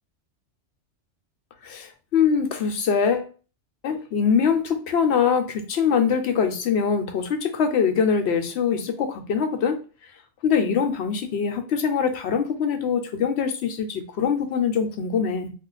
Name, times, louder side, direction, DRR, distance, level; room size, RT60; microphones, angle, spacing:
voice 1, 1.6-3.3 3.8-9.8 10.4-15.5, left 6 dB, 70° left, 6 dB, 0.8 m, -23 dB
2.5 x 2.1 x 3.9 m, 0.36 s
omnidirectional pair, 1.2 m